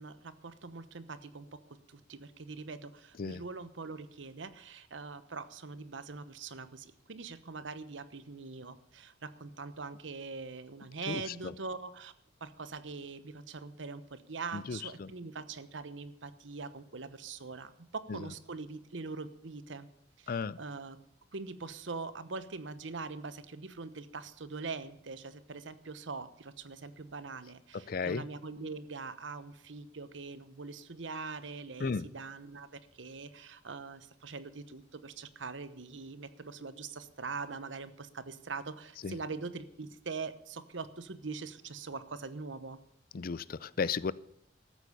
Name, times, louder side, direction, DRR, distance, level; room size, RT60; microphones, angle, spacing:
voice 1, 0.0-12.1 12.4-19.9 20.2-21.0 21.3-42.8, right 4 dB, 75° right, 13 dB, 1.0 m, -43 dB
voice 2, 11.1-11.5 14.5-15.1 20.3-20.6 27.9-28.2 31.8-32.0 39.0-39.2 43.1-44.1, left 5 dB, 50° left, 19 dB, 0.5 m, -34 dB
14.0 x 8.5 x 6.7 m, 0.78 s
head